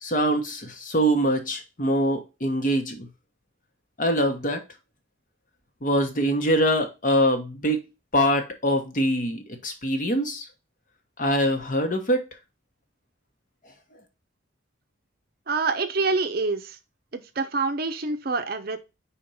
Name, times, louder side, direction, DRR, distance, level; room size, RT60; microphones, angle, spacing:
voice 1, 0.0-3.1 4.0-4.6 5.8-7.8 8.1-10.5 11.2-12.2, equal, 40° left, 1.1 m, -24 dB
voice 2, 15.5-16.8 17.1-18.8, right 4 dB, 45° right, 0.6 m, -26 dB
4.4 x 4.3 x 5.4 m
head